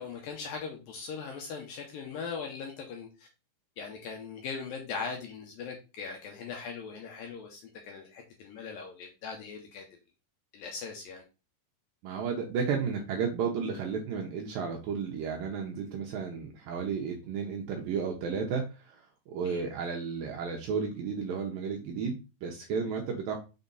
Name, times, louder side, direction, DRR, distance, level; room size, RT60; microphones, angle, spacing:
voice 1, 0.0-3.3 3.8-9.9 10.5-11.2 19.5-19.6, left 5 dB, 75° left, 2 dB, 2.2 m, -40 dB
voice 2, 12.0-23.4, right 6 dB, 75° right, 1 dB, 2.2 m, -33 dB
6.2 x 4.2 x 4.0 m, 0.30 s
omnidirectional pair, 4.9 m